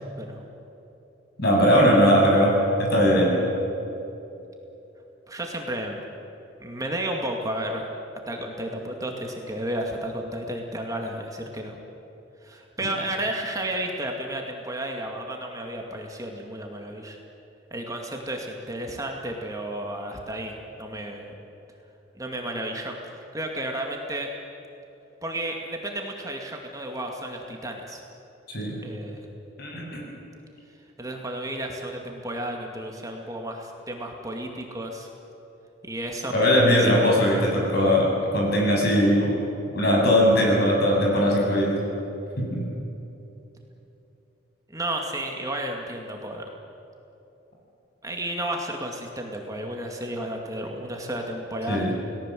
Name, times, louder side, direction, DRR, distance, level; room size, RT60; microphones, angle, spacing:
voice 1, 1.4-3.3 28.5-28.8 29.6-30.0 36.3-39.3 39.7-41.8 42.4-42.6 51.7-51.9, equal, 55° left, -2 dB, 7.8 m, -20 dB
voice 2, 5.3-6.0 6.6-7.9 8.3-11.8 12.4-17.2 17.7-21.3 22.2-24.3 25.2-28.0 28.8-29.3 31.0-35.1 35.8-37.2 44.7-46.5 48.0-52.0, right 1 dB, 20° right, 2 dB, 2.2 m, -32 dB
29.0 x 19.0 x 7.7 m, 3.0 s
head